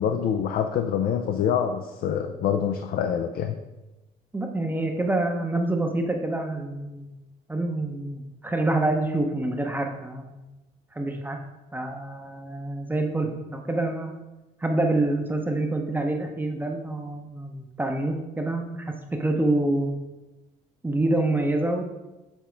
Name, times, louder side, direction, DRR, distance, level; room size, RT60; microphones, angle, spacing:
voice 1, 0.0-3.6, left 8 dB, 60° left, 5 dB, 0.5 m, -25 dB
voice 2, 4.3-7.2 7.5-10.4 10.9-11.4 11.7-14.2 14.6-20.0 20.8-21.8, right 2 dB, 10° right, 3 dB, 0.7 m, -27 dB
7.1 x 3.6 x 4.4 m, 1.0 s
cardioid pair, 110°, 17 cm